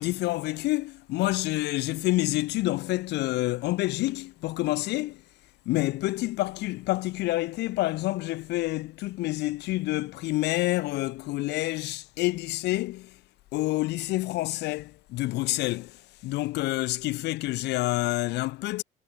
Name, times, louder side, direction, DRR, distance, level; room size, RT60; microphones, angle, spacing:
voice 1, 0.0-5.2 5.7-13.2 13.5-18.8, left 18 dB, 85° left, 7.7 m, -28 dB
cardioid pair, 110°, 17 cm